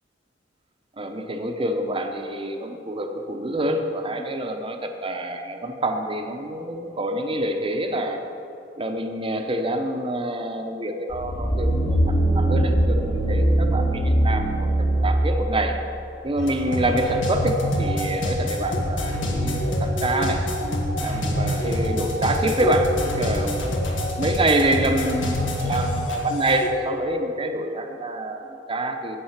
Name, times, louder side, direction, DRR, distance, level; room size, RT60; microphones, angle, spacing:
voice 1, 1.0-8.2 8.8-15.8 16.2-20.5 21.0-23.8 24.2-29.2, right 1 dB, 30° right, 5 dB, 0.7 m, -26 dB
sound 1, 11.1-15.5 16.0-16.1, right 1 dB, 35° left, 1.0 m, -21 dB
sound 2, 16.4-26.7, equal, 85° left, 1.7 m, -26 dB
8.7 x 8.3 x 5.8 m, 2.8 s
head